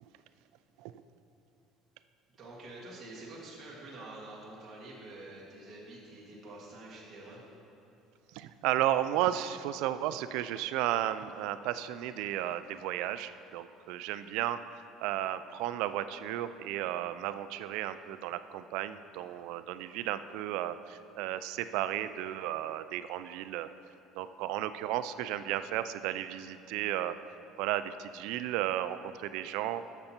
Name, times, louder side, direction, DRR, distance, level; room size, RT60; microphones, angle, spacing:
voice 1, 2.4-7.4, right 2 dB, 25° right, -6 dB, 1.7 m, -47 dB
voice 2, 8.3-14.6 15.0-23.7 24.2-27.2 27.6-29.8, right 12 dB, 70° right, 12 dB, 0.4 m, -33 dB
12.0 x 7.1 x 4.4 m, 2.9 s
cardioid pair, 170°, 0 cm